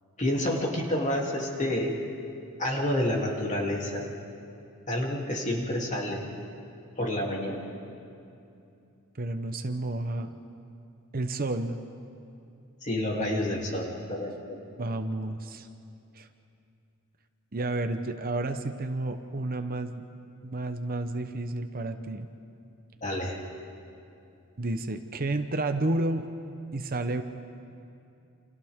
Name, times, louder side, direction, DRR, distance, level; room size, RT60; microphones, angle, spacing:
voice 1, 0.2-2.0 2.6-4.1 4.9-6.3 7.0-7.6 12.8-14.6 23.0-23.4, left 1 dB, 35° left, -2 dB, 3.0 m, -29 dB
voice 2, 9.2-10.3 11.1-11.8 14.7-15.7 16.1-16.3 17.5-20.0 20.4-22.3 24.6-26.3 26.7-27.2, right 2 dB, 40° right, 7 dB, 0.8 m, -31 dB
29.5 x 28.0 x 3.7 m, 2.6 s
head